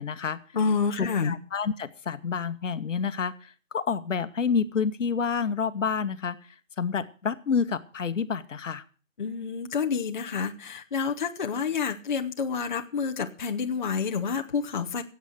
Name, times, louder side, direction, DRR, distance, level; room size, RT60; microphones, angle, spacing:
voice 1, 0.0-0.4 1.0-6.4 6.8-8.8, left 6 dB, 65° left, 12 dB, 1.1 m, -28 dB
voice 2, 0.5-1.4 9.2-15.0, left 5 dB, 35° left, 4 dB, 0.8 m, -28 dB
16.0 x 8.2 x 6.3 m, 0.39 s
hypercardioid pair, 165°, 39 cm